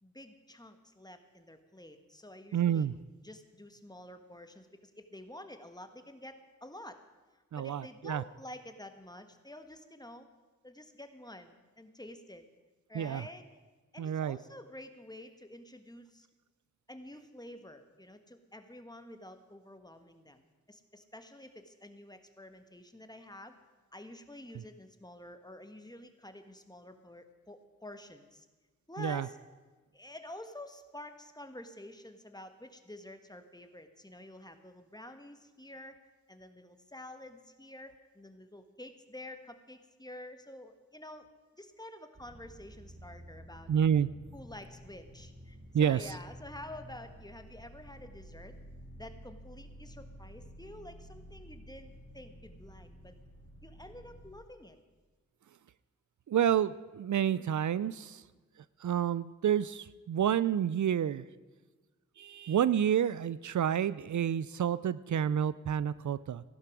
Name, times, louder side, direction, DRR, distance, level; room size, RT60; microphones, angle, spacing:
voice 1, 0.0-2.9 3.2-7.0 7.6-10.3 10.6-12.4 12.9-13.4 13.9-16.3 16.9-23.6 23.9-28.4 28.9-29.4 29.9-36.0 36.3-41.3 41.6-43.7 44.3-48.6 49.0-53.1 53.6-54.8, left 1 dB, 15° left, 8 dB, 1.4 m, -49 dB
voice 2, 2.5-2.9 7.5-8.2 12.9-13.3 14.0-14.4 29.0-29.3 43.7-44.1 45.7-46.1 56.3-58.2 58.8-61.2 62.2-66.4, right 9 dB, 75° right, 17 dB, 0.4 m, -29 dB
sound 1, 42.1-54.3, equal, 40° right, 2.7 m, -51 dB
15.0 x 11.5 x 6.1 m, 1.3 s
wide cardioid pair, 65°, 30 cm